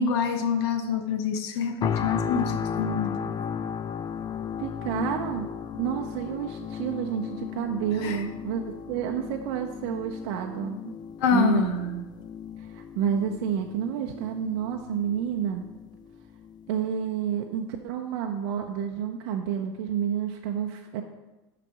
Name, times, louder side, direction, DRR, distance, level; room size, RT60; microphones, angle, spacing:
voice 1, 0.0-3.2 8.0-8.2 11.2-11.6, left 6 dB, 70° left, 7 dB, 0.9 m, -26 dB
sound 1, 1.8-16.8 17.3-17.5, left 7 dB, 30° left, 0.4 m, -35 dB
voice 2, 4.6-5.5 5.8-11.0 11.3-12.0 12.6-15.7 16.7-21.0, right 8 dB, 65° right, 3 dB, 0.6 m, -29 dB
6.2 x 5.0 x 5.7 m, 1.1 s
hypercardioid pair, 85°, 15 cm